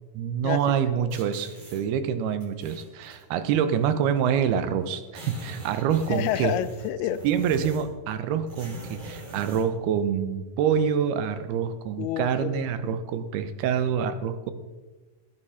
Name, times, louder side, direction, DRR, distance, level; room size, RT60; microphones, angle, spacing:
voice 1, 0.1-6.6 7.2-14.5, right 8 dB, 80° right, 11 dB, 2.8 m, -26 dB
sound 1, 1.1-1.8 2.4-3.2 4.2-4.3 4.5-4.6 4.8-8.0 8.5-9.7, right 1 dB, 40° right, 4.8 m, -43 dB
voice 2, 6.1-7.2 12.0-13.0, left 12 dB, 85° left, 12 dB, 2.6 m, -29 dB
18.0 x 10.0 x 5.7 m, 1.2 s
omnidirectional pair, 4.6 m